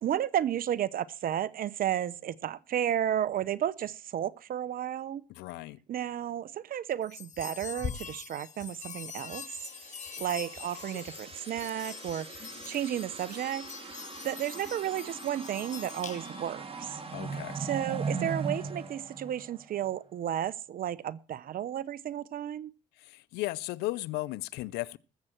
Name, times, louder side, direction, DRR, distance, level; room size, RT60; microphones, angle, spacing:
voice 1, 0.0-5.2 5.9-9.4 10.2-12.3 12.7-13.7 14.2-17.0 17.6-22.7, right 10 dB, 60° right, 0.8 m, -32 dB
voice 2, 5.3-5.8 17.1-17.6 23.0-25.0, left 18 dB, 90° left, 0.6 m, -35 dB
sound 1, 7.0-16.5, left 7 dB, 50° left, 1.3 m, -43 dB
sound 2, 9.2-19.9, right 4 dB, 35° right, 2.6 m, -40 dB
20.0 x 7.7 x 4.5 m
supercardioid pair, 70°, 16 cm